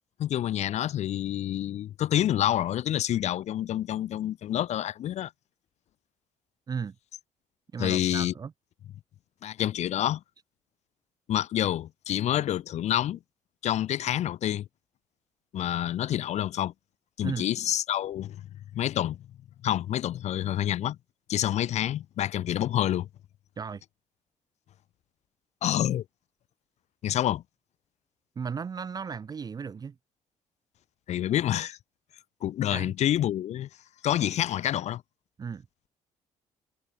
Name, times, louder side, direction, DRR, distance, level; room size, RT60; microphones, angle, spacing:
voice 1, 0.2-5.3 7.8-8.3 9.4-10.2 11.3-13.2 13.6-14.7 15.5-16.7 17.2-18.5 18.7-19.2 19.6-21.0 21.3-23.1 25.6-26.0 27.0-27.4 31.1-31.8 32.4-33.7 34.0-35.0, left 12 dB, 60° left, 0.5 m, -28 dB
voice 2, 7.7-8.5 17.2-17.5 23.6-23.8 28.4-30.0 32.7-32.9 35.4-35.7, right 6 dB, 30° right, 0.5 m, -35 dB
cardioid pair, 85°, 13 cm